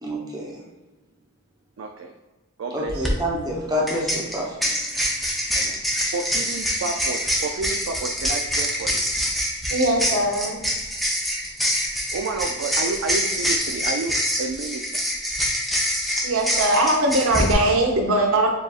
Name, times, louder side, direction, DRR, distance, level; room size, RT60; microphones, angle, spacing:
voice 1, 0.0-0.6 2.7-4.6, equal, 20° right, -3 dB, 0.9 m, -27 dB
voice 2, 1.8-2.1 2.6-3.2 5.5-5.8 6.1-9.1 12.1-14.8, right 4 dB, 65° right, 3 dB, 0.4 m, -30 dB
sound 1, 2.9-3.1 3.9-17.5, equal, ahead, 0.6 m, -25 dB
voice 3, 9.7-10.6 16.2-18.5, right 1 dB, 85° right, 2 dB, 0.8 m, -20 dB
6.9 x 2.7 x 2.4 m, 1.1 s
head